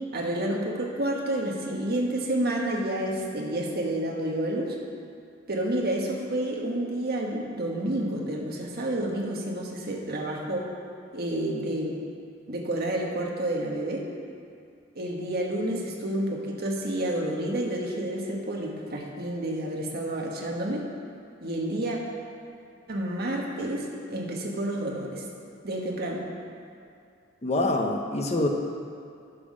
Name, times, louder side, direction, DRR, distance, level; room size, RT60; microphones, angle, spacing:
voice 1, 0.1-4.8 5.5-10.6 11.1-12.0 12.5-14.1 14.9-20.8 21.4-22.0 22.9-25.2 25.6-26.2, right 1 dB, 55° right, -1 dB, 1.4 m, -29 dB
voice 2, 27.4-28.5, left 2 dB, 35° left, 3 dB, 0.7 m, -25 dB
9.7 x 5.8 x 6.2 m, 2.4 s
head